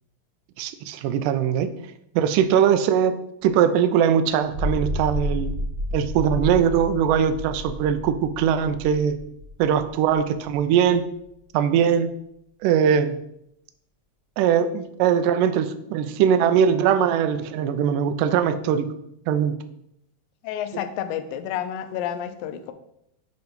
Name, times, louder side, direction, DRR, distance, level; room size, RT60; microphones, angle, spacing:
voice 1, 0.6-1.7 2.2-3.2 3.4-5.5 5.9-9.2 9.6-11.0 11.5-12.1 12.6-13.2 14.4-18.9 19.3-19.5, right 8 dB, 80° right, 9 dB, 2.0 m, -21 dB
sound 1, 4.5-10.9, left 1 dB, 45° right, 2.1 m, -31 dB
voice 2, 20.4-22.7, left 10 dB, 80° left, 9 dB, 2.2 m, -30 dB
8.0 x 3.0 x 5.1 m, 0.77 s
omnidirectional pair, 4.1 m